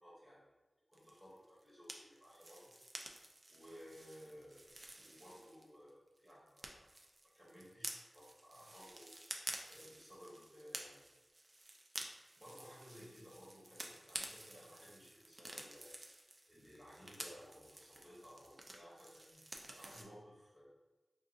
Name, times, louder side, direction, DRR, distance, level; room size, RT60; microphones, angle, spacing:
voice 1, 0.0-0.5 0.9-2.7 3.5-6.9 7.3-9.1 9.7-11.0 12.4-15.9 16.5-20.7, equal, 5° left, -8 dB, 1.1 m, -58 dB
sound 1, 0.9-5.9 6.2-20.0, right 1 dB, 35° right, 0.4 m, -51 dB
2.5 x 2.4 x 3.9 m, 1.1 s
wide cardioid pair, 95°, 0 cm